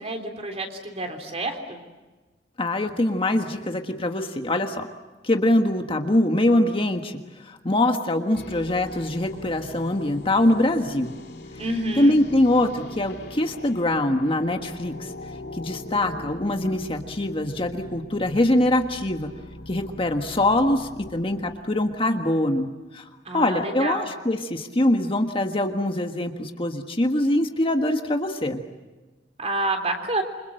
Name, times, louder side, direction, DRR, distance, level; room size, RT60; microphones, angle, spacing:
voice 1, 0.0-1.8 11.6-12.2 23.3-24.1 29.4-30.2, right 2 dB, 35° right, 4 dB, 3.5 m, -28 dB
voice 2, 2.6-4.9 5.2-11.1 12.0-15.1 15.5-19.3 19.7-22.7 22.9-28.6, left 1 dB, 30° left, 5 dB, 1.5 m, -23 dB
sound 1, 8.3-22.4, left 1 dB, 65° left, 2.7 m, -41 dB
28.0 x 25.5 x 7.7 m, 1.2 s
head